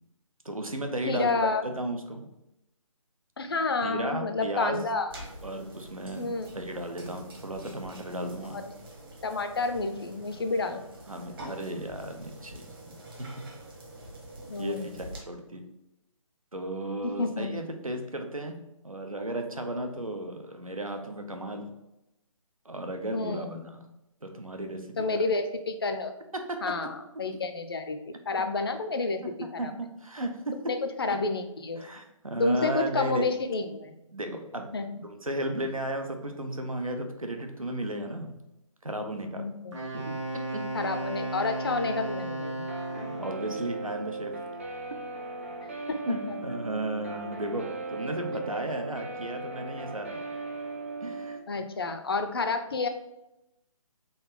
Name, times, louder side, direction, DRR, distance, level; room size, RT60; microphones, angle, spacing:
voice 1, 0.4-1.3 1.6-2.3 3.8-4.9 5.4-6.3 6.5-8.6 11.1-13.4 14.6-15.6 16.5-21.7 22.6-23.8 24.2-25.2 26.3-26.9 29.2-29.3 29.6-30.7 31.1-31.2 31.8-33.3 34.1-34.7 35.2-38.4 38.8-39.4 39.9-40.2 40.5-40.6 42.9-44.3 46.0-50.2 51.0-51.4, right 1 dB, 90° right, 5 dB, 0.8 m, -34 dB
voice 2, 1.1-1.6 3.4-5.1 6.2-6.5 8.5-8.6 9.2-10.9 14.5-15.0 17.0-17.5 23.1-23.7 25.0-26.1 26.6-29.7 30.7-31.8 32.4-33.9 34.7-34.9 39.4-39.8 40.7-42.7 45.9-46.8 51.5-52.9, left 3 dB, 45° left, 7 dB, 0.5 m, -30 dB
sound 1, 5.1-15.2, right 1 dB, 40° right, 1.1 m, -46 dB
Wind instrument woodwind instrument, 39.7-43.4, right 1 dB, 60° right, 1.5 m, -34 dB
Guitar, 42.7-51.4, right 3 dB, 25° right, 0.4 m, -38 dB
3.9 x 2.8 x 3.5 m, 0.89 s
figure-of-eight pair, 145°, 17 cm